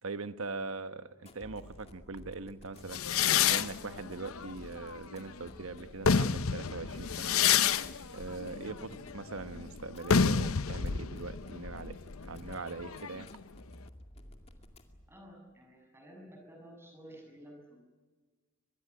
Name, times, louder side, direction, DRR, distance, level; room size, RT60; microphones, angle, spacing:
voice 1, 0.0-3.0 3.5-7.3 8.1-12.0 12.2-13.3, right 3 dB, 75° right, 11 dB, 1.2 m, -41 dB
sound 1, 1.2-15.2, left 1 dB, 30° left, 2.3 m, -54 dB
sound 2, 2.9-5.4 5.8-13.4, left 7 dB, 80° left, 0.8 m, -30 dB
voice 2, 15.1-17.8, equal, 10° right, 2 dB, 7.4 m, -52 dB
24.5 x 21.0 x 9.9 m, 1.4 s
head